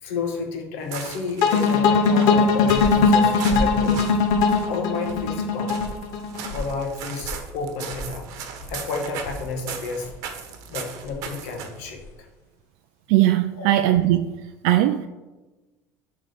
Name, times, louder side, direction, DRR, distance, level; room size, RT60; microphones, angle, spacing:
voice 1, 0.0-4.0 4.6-5.8 6.5-8.3 8.7-10.1 10.7-12.0 13.5-13.8, left 4 dB, 85° left, 1.6 m, -31 dB
sound 1, 0.8-11.9, right 7 dB, 55° right, 1.0 m, -38 dB
sound 2, 1.4-6.5, left 5 dB, 60° left, 0.9 m, -19 dB
sound 3, 2.3-12.3, equal, 40° left, 1.1 m, -38 dB
voice 2, 13.1-14.3 14.6-15.1, right 14 dB, 75° right, 0.3 m, -19 dB
8.2 x 3.7 x 5.9 m
cardioid pair, 175°, 7 cm